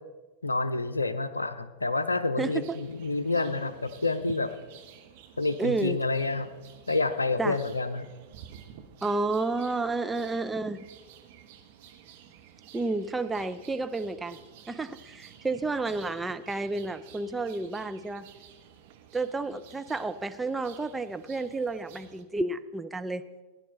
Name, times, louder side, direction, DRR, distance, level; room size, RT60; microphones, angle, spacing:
voice 1, 0.4-4.5 5.4-6.5 6.9-8.1, left 3 dB, 80° left, 12 dB, 0.6 m, -28 dB
voice 2, 2.4-2.8 5.6-6.0 7.4-7.6 9.0-10.8 12.7-14.4 14.7-18.3 19.1-23.2, right 3 dB, 10° right, 9 dB, 0.5 m, -31 dB
sound 1, 2.4-22.2, right 9 dB, 50° right, 1.0 m, -53 dB
16.0 x 10.5 x 4.1 m, 1.2 s
figure-of-eight pair, 90°, 0 cm